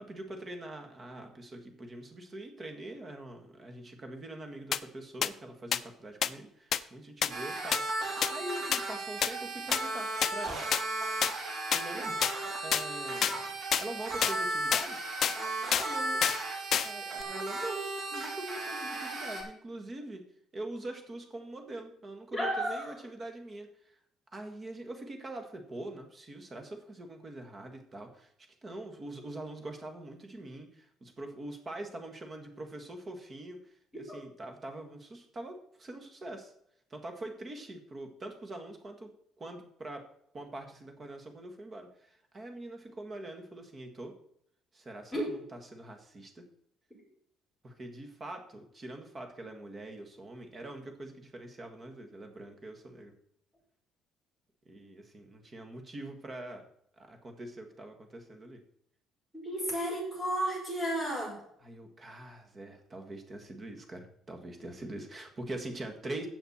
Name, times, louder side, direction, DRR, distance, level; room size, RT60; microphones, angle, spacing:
voice 1, 0.0-7.8 8.3-10.6 11.7-12.1 12.6-13.5 13.8-15.0 15.7-16.2 16.8-20.2 20.5-24.0 24.3-28.3 28.6-36.5 36.9-39.1 39.4-40.0 40.3-44.1 44.7-46.4 47.6-53.1 54.6-56.6 57.0-58.6 61.6-66.3, right 1 dB, 25° right, 4 dB, 1.7 m, -43 dB
sound 1, 4.7-4.8 5.2-5.3 5.7-5.8 6.2-6.3 6.7-6.8 7.2-7.3 7.7-7.8 8.2-8.3 8.7-8.8 9.2-9.3 9.7-9.8 10.2-10.3 10.7-10.8 11.2-11.3 11.7-11.8 12.2-12.3 12.7-12.8 13.2-13.3 13.7-13.8 14.2-14.4 14.7-14.9 15.2-15.4 15.7-15.9 16.2-16.4 16.7-16.9 17.2-17.3, left 9 dB, 45° left, 0.4 m, -27 dB
sound 2, 7.3-19.4, right 2 dB, 45° right, 4.5 m, -35 dB
voice 2, 22.3-22.9 45.1-45.3 59.3-61.4, right 1 dB, 5° right, -4 dB, 5.2 m, -32 dB
16.0 x 5.8 x 4.4 m, 0.69 s
cardioid pair, 160°, 0 cm